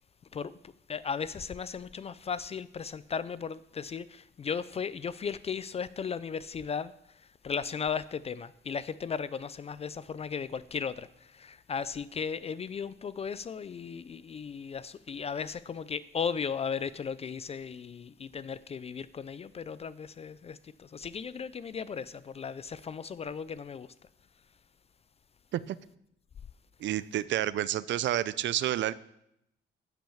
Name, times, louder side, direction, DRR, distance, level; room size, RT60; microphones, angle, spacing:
voice 1, 0.3-23.9, left 6 dB, 30° left, 0.3 m, -36 dB
voice 2, 26.8-28.9, right 12 dB, 70° right, 0.5 m, -29 dB
12.0 x 6.2 x 7.0 m
cardioid pair, 140°, 20 cm